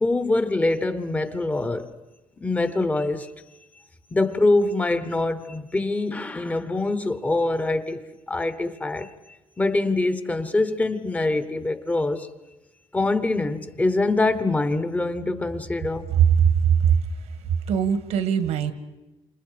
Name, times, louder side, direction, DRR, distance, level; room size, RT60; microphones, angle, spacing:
voice 1, 0.0-2.0 2.4-3.3 4.1-8.0 8.3-9.1 9.6-12.3 12.9-16.1, left 2 dB, 15° left, 1.0 m, -24 dB
voice 2, 16.1-17.0 17.7-18.7, right 8 dB, 85° right, 1.8 m, -20 dB
29.5 x 27.5 x 5.1 m
cardioid pair, 165°, 11 cm